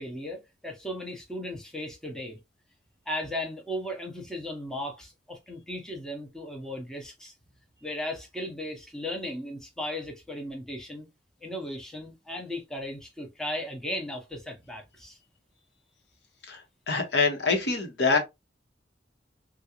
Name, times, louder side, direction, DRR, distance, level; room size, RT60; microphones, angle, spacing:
voice 1, 0.0-2.4 3.1-7.3 7.8-11.1 11.4-15.2, left 1 dB, 5° left, 0.7 m, -36 dB
voice 2, 16.9-18.2, left 4 dB, 70° left, 1.1 m, -25 dB
3.7 x 2.4 x 2.9 m
head